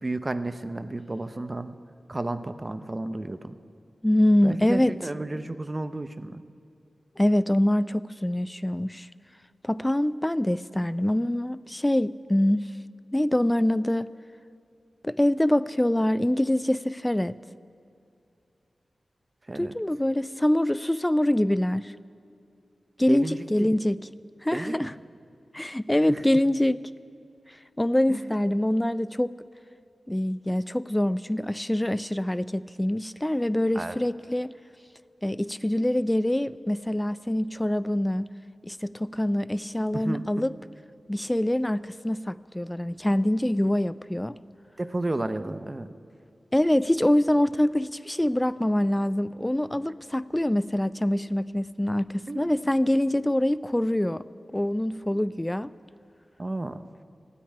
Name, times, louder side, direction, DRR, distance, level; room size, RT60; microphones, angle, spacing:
voice 1, 0.0-1.8 2.1-3.6 4.4-6.4 19.5-19.7 23.1-23.8 24.5-24.9 26.1-26.2 28.1-28.2 33.7-34.0 39.9-40.5 44.8-45.9 52.3-52.5 56.4-56.9, right 2 dB, 30° right, 11 dB, 0.6 m, -32 dB
voice 2, 4.0-4.9 7.2-9.1 9.6-12.7 13.1-14.1 15.0-17.3 19.6-21.9 23.0-24.0 24.4-24.9 25.5-26.8 27.8-29.4 30.1-34.5 35.2-38.3 38.7-40.6 41.1-44.4 46.5-54.2 54.5-55.7, left 1 dB, 10° left, 16 dB, 0.3 m, -25 dB
13.5 x 8.5 x 9.7 m, 2.5 s
wide cardioid pair, 95°, 0 cm